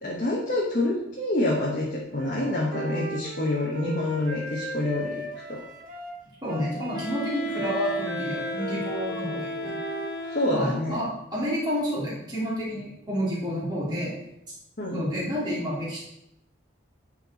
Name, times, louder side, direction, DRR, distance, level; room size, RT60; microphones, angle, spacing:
voice 1, 0.0-5.2 5.5-5.6 10.3-11.1 14.8-15.1, left 1 dB, 40° left, -4 dB, 1.3 m, -27 dB
Wind instrument woodwind instrument, 2.1-10.7, equal, 45° right, 1.1 m, -37 dB
voice 2, 6.4-9.8 10.5-14.1 14.9-16.0, equal, 20° right, -8 dB, 3.1 m, -30 dB
Wind instrument woodwind instrument 2, 6.9-11.0, equal, 20° left, 1.8 m, -34 dB
10.5 x 4.5 x 4.3 m, 0.82 s
head